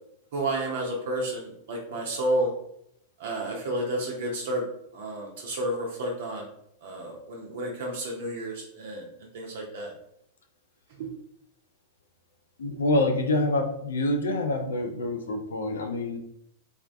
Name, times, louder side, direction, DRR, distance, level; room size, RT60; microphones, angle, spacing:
voice 1, 0.3-2.5 3.2-4.6 4.9-6.5 6.8-9.1 9.3-9.9 11.0-11.1, right 1 dB, 60° right, -1 dB, 0.5 m, -31 dB
voice 2, 12.6-16.2, left 2 dB, 70° left, 5 dB, 0.3 m, -26 dB
2.3 x 2.1 x 2.4 m, 0.73 s
figure-of-eight pair, 90°, 0 cm